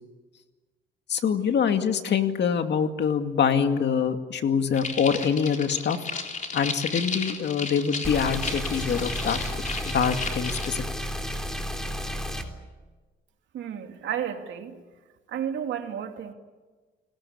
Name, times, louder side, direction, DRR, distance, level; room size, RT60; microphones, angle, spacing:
voice 1, 1.1-6.0 6.5-9.4 9.8-10.8, left 7 dB, 60° left, 7 dB, 2.3 m, -25 dB
sound 1, 4.7-10.7, left 4 dB, 40° left, 3.9 m, -34 dB
sound 2, 8.0-12.4, equal, ahead, 3.7 m, -32 dB
voice 2, 13.5-14.8 15.3-16.3, right 9 dB, 75° right, 5 dB, 2.7 m, -32 dB
30.0 x 19.5 x 8.5 m, 1.3 s
cardioid pair, 90°, 20 cm